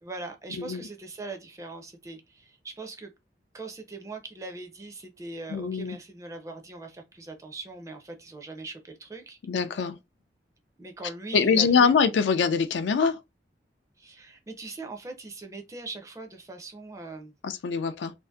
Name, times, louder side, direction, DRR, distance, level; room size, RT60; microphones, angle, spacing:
voice 1, 0.0-3.1 3.5-9.4 10.8-12.0 14.0-17.3, right 2 dB, 20° right, 0.4 m, -41 dB
voice 2, 5.5-6.0 9.5-10.0 11.3-13.2 17.4-18.1, left 5 dB, 80° left, 0.4 m, -23 dB
2.6 x 2.4 x 2.2 m
head